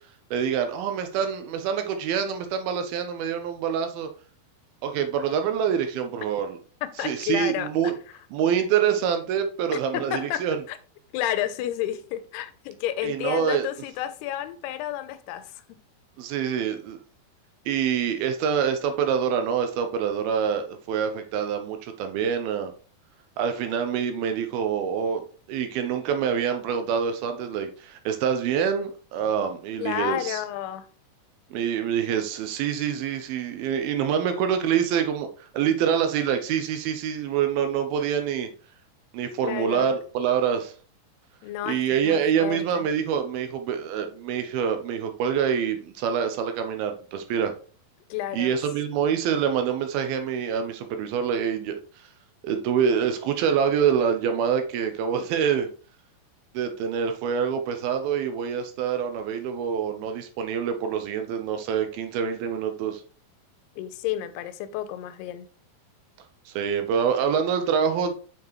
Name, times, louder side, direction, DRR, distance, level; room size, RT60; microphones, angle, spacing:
voice 1, 0.3-4.1 4.8-6.6 7.0-7.9 8.3-10.6 13.0-13.6 16.2-17.0 17.7-22.7 23.4-25.2 25.5-30.4 31.5-38.5 39.1-40.7 41.6-47.5 48.3-51.8 52.4-55.7 56.5-63.0 66.5-68.1, right 7 dB, 75° right, 2.6 m, -26 dB
voice 2, 6.8-7.7 9.7-10.8 11.1-15.6 29.8-30.9 39.4-39.9 41.4-42.9 48.1-48.5 63.8-65.5, left 12 dB, 90° left, 2.8 m, -31 dB
6.8 x 6.0 x 3.1 m
omnidirectional pair, 4.5 m